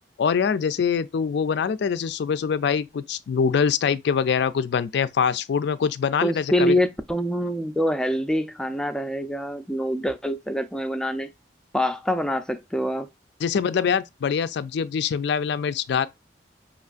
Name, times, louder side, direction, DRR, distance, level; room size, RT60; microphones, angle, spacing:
voice 1, 0.2-6.7 13.4-16.1, left 6 dB, 70° left, 0.4 m, -24 dB
voice 2, 6.2-11.3 11.7-13.1, equal, 5° left, 0.4 m, -25 dB
5.5 x 3.0 x 2.4 m
head